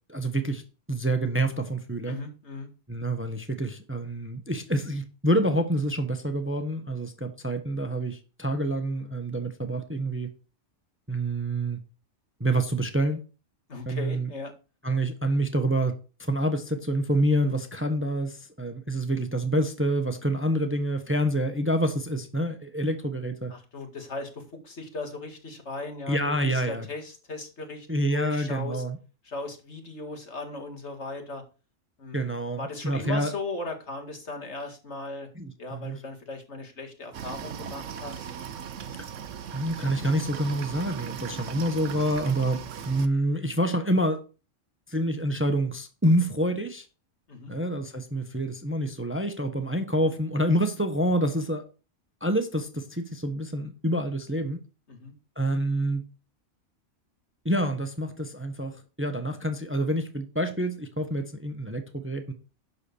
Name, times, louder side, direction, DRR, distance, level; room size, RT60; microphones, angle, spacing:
voice 1, 0.1-0.6 0.9-2.2 2.9-10.3 11.1-11.8 12.4-13.2 13.9-14.3 14.8-15.9 16.2-23.5 26.1-26.9 27.9-29.0 32.1-33.3 35.4-36.0 39.0-39.1 39.5-44.2 44.9-46.9 47.5-51.6 52.2-54.6 55.4-56.0 57.4-62.3, right 1 dB, 10° right, 1.0 m, -27 dB
voice 2, 2.1-2.7 13.7-14.5 23.5-28.8 29.2-31.4 32.0-32.3 32.6-35.3 35.6-38.3 47.3-47.5 54.9-55.1, left 3 dB, 65° left, 2.3 m, -37 dB
sound 1, 37.1-43.1, right 8 dB, 80° right, 1.2 m, -38 dB
11.5 x 4.2 x 7.0 m
omnidirectional pair, 1.3 m